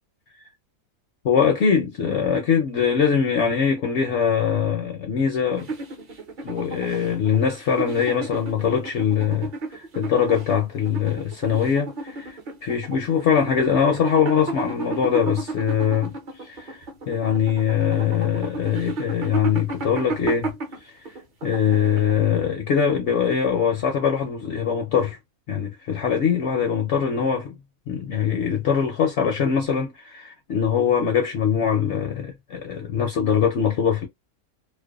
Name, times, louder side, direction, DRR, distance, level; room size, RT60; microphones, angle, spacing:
voice 1, 1.2-5.7 6.4-16.1 16.4-16.8 17.1-20.5 20.8-20.9 21.4-25.2 25.5-27.6 27.9-34.1, left 7 dB, 65° left, 0.7 m, -22 dB
sound 1, 5.5-22.4, right 3 dB, 45° right, 0.7 m, -33 dB
2.5 x 2.1 x 2.3 m
omnidirectional pair, 1.5 m